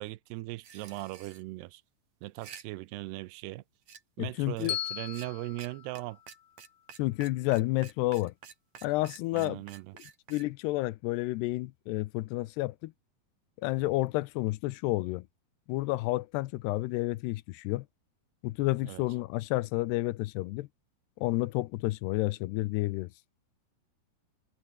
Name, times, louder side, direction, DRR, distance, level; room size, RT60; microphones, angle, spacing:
voice 1, 0.0-1.8 2.2-3.6 4.2-6.2 9.3-10.0 18.8-19.0, right 19 dB, 85° right, 2.8 m, -39 dB
sound 1, 0.6-1.4 2.2-2.6 3.9-4.0 4.6-4.7 5.1-5.3 5.6-5.7 6.0-6.1 6.3-10.4, right 7 dB, 50° right, 3.6 m, -49 dB
voice 2, 4.2-4.8 7.0-8.3 8.8-9.6 10.3-12.9 13.6-15.3 15.7-17.9 18.4-20.7 21.2-23.1, left 19 dB, 85° left, 2.8 m, -30 dB
Bell, 4.7-6.9, left 11 dB, 65° left, 3.3 m, -39 dB
omnidirectional pair, 4.7 m